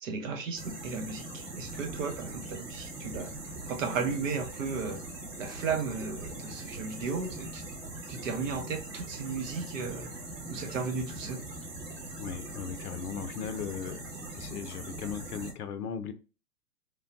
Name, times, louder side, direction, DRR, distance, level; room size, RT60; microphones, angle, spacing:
voice 1, 0.0-3.3 3.7-5.0 5.4-7.6 8.1-10.2 10.5-11.4, right 5 dB, 50° right, 0.8 m, -35 dB
sound 1, 0.6-15.5, right 2 dB, 75° right, 1.5 m, -41 dB
voice 2, 12.2-14.0 14.3-16.1, left 7 dB, 65° left, 0.6 m, -37 dB
3.3 x 2.2 x 2.5 m
hypercardioid pair, 120°, 49 cm